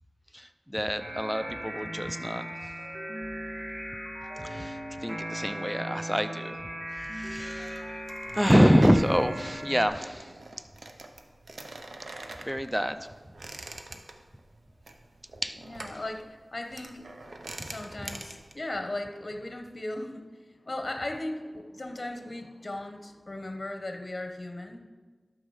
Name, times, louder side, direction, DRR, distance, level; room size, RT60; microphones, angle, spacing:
voice 1, 0.3-2.5 4.4-6.6 7.0-8.0 8.3-10.3 12.4-13.1 15.4-15.6 17.6-17.7, equal, 5° right, 10 dB, 0.5 m, -26 dB
sound 1, 1.0-9.9, right 1 dB, 55° right, 2.3 m, -38 dB
sound 2, 7.2-18.5, right 2 dB, 85° right, 0.8 m, -45 dB
voice 2, 15.6-17.1 17.6-20.3 20.6-24.8, left 1 dB, 40° left, 5 dB, 1.1 m, -37 dB
12.0 x 6.2 x 4.8 m, 1.4 s
wide cardioid pair, 80°, 0 cm